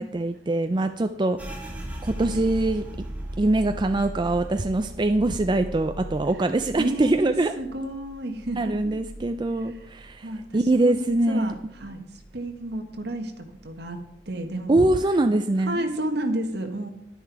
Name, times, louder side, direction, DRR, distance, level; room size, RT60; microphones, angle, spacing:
voice 1, 0.0-1.7 2.0-2.8 3.4-7.5 8.6-11.6 14.7-15.9, right 2 dB, 25° right, 8 dB, 0.4 m, -23 dB
sound 1, 1.4-10.8 11.1-12.3 12.6-13.1 13.6-14.1, right 1 dB, 10° right, 1.6 m, -38 dB
voice 2, 6.8-8.9 10.2-14.0 14.3-14.9 15.7-16.9, right 1 dB, 60° right, 6 dB, 1.4 m, -31 dB
10.5 x 10.0 x 4.7 m, 0.81 s
head